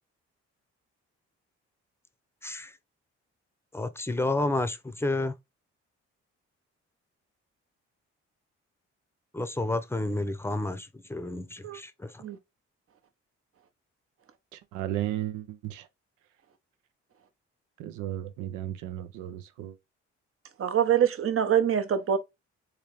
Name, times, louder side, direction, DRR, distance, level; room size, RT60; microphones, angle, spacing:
voice 1, 3.7-5.3 9.3-12.1, left 2 dB, 10° left, 0.7 m, -30 dB
voice 2, 14.5-15.9 17.8-19.8, right 12 dB, 85° right, 0.6 m, -34 dB
voice 3, 20.6-22.2, right 9 dB, 50° right, 0.8 m, -24 dB
3.8 x 2.8 x 3.1 m
supercardioid pair, 60°, 30 cm